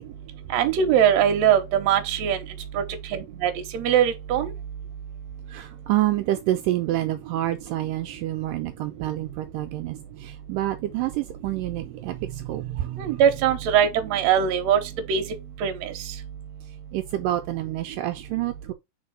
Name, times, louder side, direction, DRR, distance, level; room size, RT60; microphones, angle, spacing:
voice 1, 0.5-2.4 2.7-2.8 3.1-4.5 13.0-14.8 15.1-15.2 15.6-15.9, right 9 dB, 65° right, 1.9 m, -21 dB
voice 2, 5.5-10.0 10.2-13.0 16.9-18.7, right 14 dB, 80° right, 2.1 m, -27 dB
4.8 x 4.4 x 5.1 m
omnidirectional pair, 4.0 m